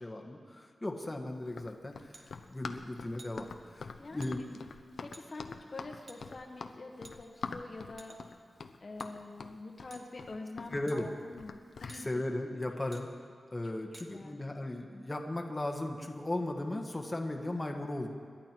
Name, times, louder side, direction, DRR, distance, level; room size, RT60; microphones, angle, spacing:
voice 1, 0.0-4.6 10.7-11.1 12.0-13.1 13.5-18.1, left 1 dB, 20° left, 1 dB, 1.5 m, -37 dB
Run, 1.5-12.0, left 4 dB, 80° left, 0.9 m, -44 dB
sound 1, 2.1-2.3 3.2-3.4 4.2-4.3 5.1-5.3 6.1-6.2 7.0-7.5 8.0-8.4 9.0-9.1 9.9-10.1 10.9-11.0 11.9-12.1 12.9-13.1 13.9-14.1, right 2 dB, 55° right, 1.5 m, -52 dB
voice 2, 4.0-4.4 5.0-8.2 8.8-12.1 13.6-13.7 14.0-14.4, left 3 dB, 45° left, 2 dB, 1.3 m, -46 dB
27.0 x 11.5 x 4.6 m, 2.2 s
wide cardioid pair, 125°, 0 cm